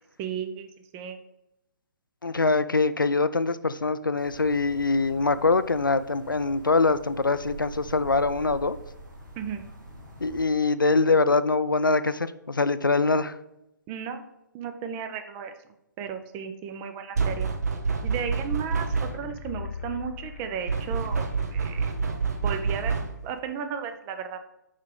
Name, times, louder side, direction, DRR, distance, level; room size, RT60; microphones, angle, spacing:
voice 1, 0.2-1.2 9.4-9.6 13.9-14.2 14.5-15.5 16.0-17.5 18.0-21.9 22.4-24.4, right 7 dB, 15° right, 8 dB, 0.4 m, -34 dB
voice 2, 2.2-8.8 10.2-13.4, left 3 dB, 85° left, 14 dB, 0.4 m, -23 dB
sound 1, 4.1-10.4, right 1 dB, 75° right, 2.3 m, -44 dB
sound 2, 17.1-19.4 20.7-23.3, right 4 dB, 55° right, 0.9 m, -27 dB
sound 3, 18.9-21.8 22.1-22.2, left 5 dB, 45° left, 0.8 m, -41 dB
5.6 x 4.7 x 4.9 m, 0.88 s
figure-of-eight pair, 130°, 11 cm